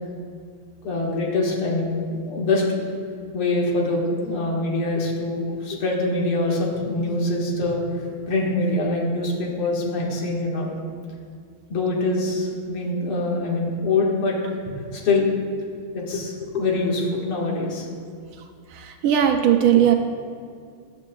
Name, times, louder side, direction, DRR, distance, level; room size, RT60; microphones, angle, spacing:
voice 1, 0.8-2.8 3.3-10.8 11.7-14.4 14.7-15.3 15.9-17.9 19.7-19.8, left 2 dB, 80° left, -2 dB, 2.6 m, -24 dB
voice 2, 18.7-19.9, right 10 dB, 75° right, 4 dB, 1.4 m, -18 dB
15.0 x 10.5 x 2.3 m, 2.3 s
omnidirectional pair, 2.4 m